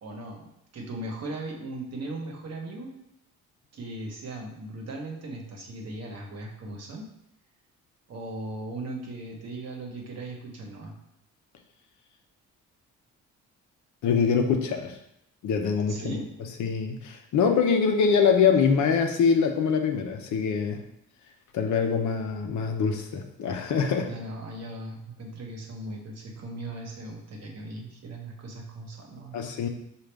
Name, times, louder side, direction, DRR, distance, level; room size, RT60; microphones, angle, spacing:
voice 1, 0.0-2.9 3.7-7.1 8.1-10.9 15.9-16.3 24.0-29.4, right 2 dB, 55° right, 1 dB, 1.0 m, -38 dB
voice 2, 14.0-15.0 15.4-16.2 16.6-20.8 21.5-24.1 29.3-29.7, left 6 dB, 75° left, 4 dB, 0.7 m, -24 dB
4.9 x 2.5 x 3.3 m, 0.80 s
cardioid pair, 90°, 30 cm